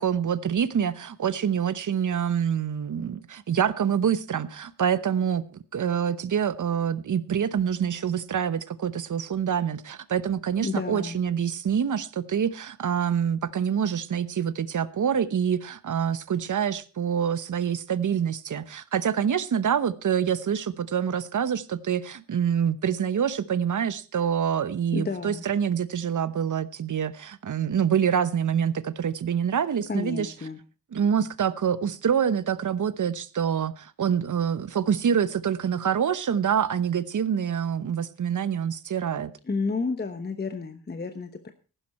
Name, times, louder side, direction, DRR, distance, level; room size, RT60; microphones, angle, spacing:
voice 1, 0.0-5.4 5.7-30.3 30.9-39.3, right 8 dB, 50° right, 15 dB, 1.0 m, -26 dB
voice 2, 10.6-11.2 24.9-25.5 29.9-30.6 39.4-41.5, left 4 dB, 25° left, 8 dB, 1.0 m, -31 dB
14.5 x 12.5 x 4.3 m, 0.35 s
wide cardioid pair, 120°, 40 cm